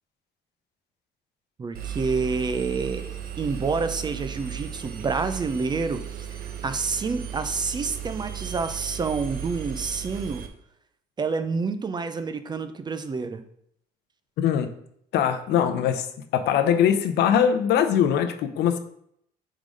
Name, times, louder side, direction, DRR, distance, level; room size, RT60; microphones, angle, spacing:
voice 1, 1.6-3.1 3.4-10.4 11.2-13.4, right 4 dB, 25° right, 10 dB, 0.5 m, -28 dB
Engine, 1.7-10.5, right 9 dB, 60° right, 0.8 m, -35 dB
voice 2, 14.4-14.7 15.1-16.1 16.3-18.8, left 9 dB, 75° left, 8 dB, 0.7 m, -21 dB
4.8 x 3.8 x 5.1 m, 0.71 s
cardioid pair, 110°, 17 cm